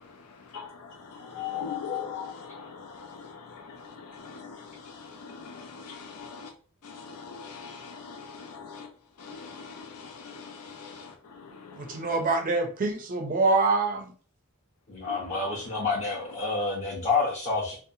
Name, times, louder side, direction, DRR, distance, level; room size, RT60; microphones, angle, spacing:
voice 1, 1.3-2.6 5.6-6.5 7.2-7.8 8.0-8.2 8.5-8.9 9.2-9.7 10.3-10.4 10.8-10.9, left 8 dB, 80° left, 0.5 m, -37 dB
voice 2, 11.8-14.1, right 3 dB, 40° right, 0.5 m, -25 dB
voice 3, 14.9-17.8, left 4 dB, 30° left, 0.6 m, -28 dB
2.7 x 2.1 x 2.7 m
head